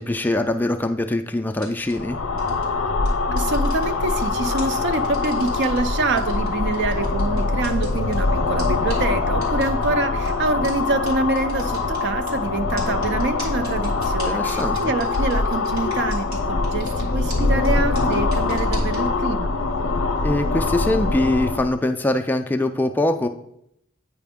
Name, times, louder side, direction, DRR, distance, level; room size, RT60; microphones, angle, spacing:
voice 1, 0.0-2.2 14.2-14.9 20.2-23.3, left 1 dB, 10° left, 5 dB, 0.3 m, -23 dB
sound 1, 1.6-1.9 2.4-2.6 3.0-4.2 4.6-5.8 6.2-8.2 8.6-8.7 8.9-9.0 9.4-9.9 10.2-10.3 10.6-10.7 11.1-11.2 11.4-12.3 12.8-16.4 16.6-17.0 17.3-17.4 17.6-17.7 18.0-19.0, right 1 dB, 90° right, 2.4 m, -38 dB
sound 2, 1.9-21.8, left 3 dB, 70° left, 0.6 m, -23 dB
voice 2, 3.3-19.5, right 2 dB, 55° right, 9 dB, 0.5 m, -26 dB
8.9 x 5.0 x 3.5 m, 0.75 s
head